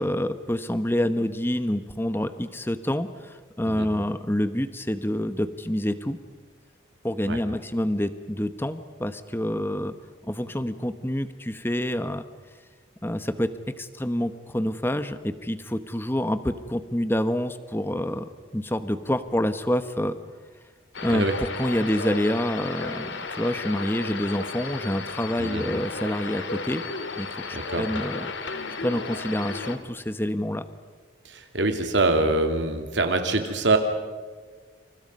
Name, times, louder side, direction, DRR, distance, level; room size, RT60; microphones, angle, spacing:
voice 1, 0.0-6.2 7.0-9.9 10.3-12.2 13.0-20.2 21.0-21.3 21.6-26.8 27.2-28.3 28.8-30.7, equal, 10° left, 11 dB, 1.0 m, -27 dB
sound 1, 20.9-29.8, left 4 dB, 70° left, 2.1 m, -34 dB
voice 2, 27.5-27.9 31.2-33.8, right 2 dB, 70° right, 5 dB, 2.6 m, -24 dB
29.0 x 28.0 x 5.5 m, 1.4 s
head